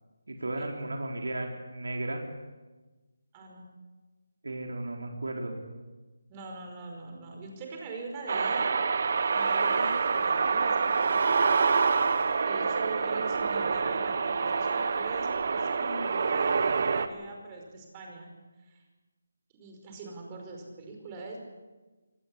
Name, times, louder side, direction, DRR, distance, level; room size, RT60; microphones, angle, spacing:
voice 1, 0.3-2.2 4.4-5.6, right 2 dB, 85° right, 1 dB, 4.2 m, -34 dB
voice 2, 3.3-3.7 6.3-8.8 9.3-11.5 12.4-18.3 18.6-18.8 19.5-21.4, right 3 dB, 20° right, 2 dB, 5.2 m, -42 dB
sound 1, 8.3-17.1, right 5 dB, 45° right, 1.5 m, -26 dB
24.0 x 19.0 x 8.6 m, 1.2 s
figure-of-eight pair, 165°, 0 cm